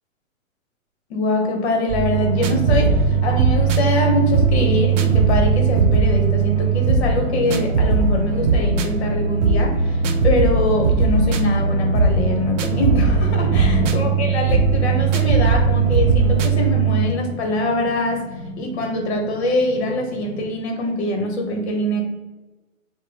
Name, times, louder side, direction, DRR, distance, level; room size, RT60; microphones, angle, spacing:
voice 1, 1.1-18.3 18.6-22.0, left 2 dB, 55° left, 3 dB, 1.1 m, -23 dB
sound 1, 1.9-17.1, right 5 dB, 65° right, 0.6 m, -19 dB
sound 2, 2.3-20.4, left 1 dB, 5° right, 0.4 m, -32 dB
4.4 x 2.1 x 3.4 m, 1.1 s
hypercardioid pair, 150°, 40 cm